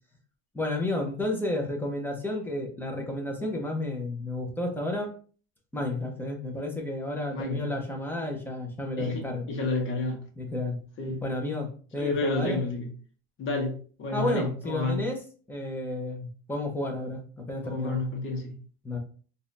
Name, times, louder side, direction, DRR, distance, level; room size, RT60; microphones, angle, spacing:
voice 1, 0.5-5.1 5.7-9.4 10.4-10.8 11.2-12.6 14.1-15.2 15.5-18.0 18.8-19.0, left 1 dB, 5° left, 0.9 m, -31 dB
voice 2, 7.3-7.6 9.0-10.2 11.0-11.2 12.0-12.9 13.4-15.1 17.6-18.6, left 2 dB, 40° left, 1.3 m, -30 dB
4.1 x 2.6 x 2.6 m
supercardioid pair, 115°, 31 cm